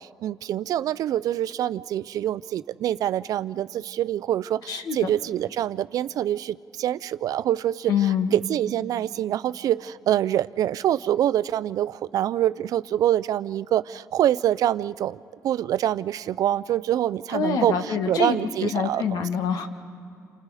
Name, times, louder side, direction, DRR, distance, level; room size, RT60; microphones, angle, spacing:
voice 1, 0.0-15.2 15.4-19.3, right 11 dB, 70° right, 16 dB, 0.4 m, -25 dB
voice 2, 7.9-8.3 17.3-19.7, left 7 dB, 75° left, 7 dB, 1.6 m, -25 dB
29.0 x 27.0 x 4.9 m, 2.5 s
cardioid pair, 110°, 6 cm